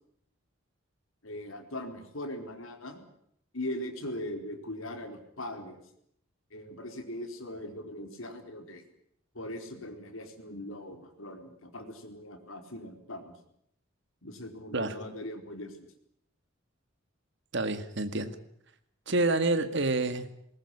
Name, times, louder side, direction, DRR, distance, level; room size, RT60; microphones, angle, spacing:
voice 1, 1.2-3.0 3.5-5.8 6.5-8.8 9.3-13.4 14.2-15.9, left 1 dB, 80° left, 5 dB, 4.3 m, -40 dB
voice 2, 17.5-18.4 19.1-20.3, right 2 dB, 60° right, 11 dB, 2.0 m, -28 dB
21.0 x 19.5 x 9.9 m, 0.71 s
head